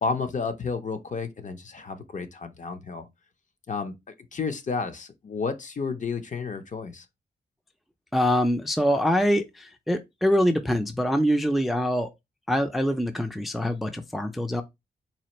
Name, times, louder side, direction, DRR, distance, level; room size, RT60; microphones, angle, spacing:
voice 1, 0.0-3.1 3.7-7.1, left 4 dB, 45° left, 0.6 m, -31 dB
voice 2, 8.1-12.1 12.5-14.6, equal, ahead, 0.4 m, -24 dB
4.1 x 2.5 x 2.9 m
wide cardioid pair, 115°, 18 cm